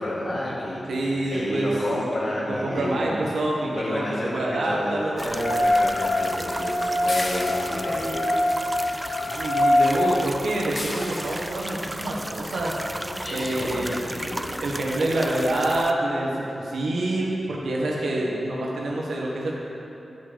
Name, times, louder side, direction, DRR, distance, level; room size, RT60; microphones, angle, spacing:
voice 1, 0.0-3.1 3.7-8.3 8.6-9.3 13.0-14.5, left 1 dB, 55° left, -5 dB, 2.1 m, -31 dB
voice 2, 0.9-1.8 2.5-5.3 9.2-12.8 13.3-14.1 14.6-19.5, right 1 dB, 90° right, -3 dB, 1.5 m, -27 dB
sound 1, 5.2-15.9, right 1 dB, 10° right, 0.3 m, -35 dB
sound 2, 5.3-9.8, left 1 dB, 90° left, 2.0 m, -24 dB
sound 3, 7.1-8.0 10.7-11.5 13.0-13.1 13.7-13.8 14.1-14.2 14.5-14.6, left 2 dB, 40° left, 1.0 m, -35 dB
10.5 x 5.4 x 5.2 m, 3.0 s
wide cardioid pair, 90°, 0 cm